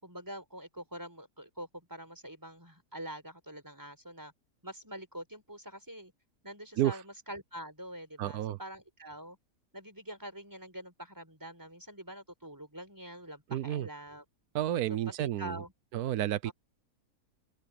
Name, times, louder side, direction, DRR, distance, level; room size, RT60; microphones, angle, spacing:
voice 1, 0.0-4.3 4.6-6.1 6.4-9.4 9.7-14.2 15.1-15.7 16.4-16.5, right 1 dB, 10° right, 5.7 m, -45 dB
voice 2, 8.2-8.6 13.5-13.9 14.5-15.6 15.9-16.5, right 12 dB, 80° right, 1.3 m, -31 dB
omnidirectional pair, 1.6 m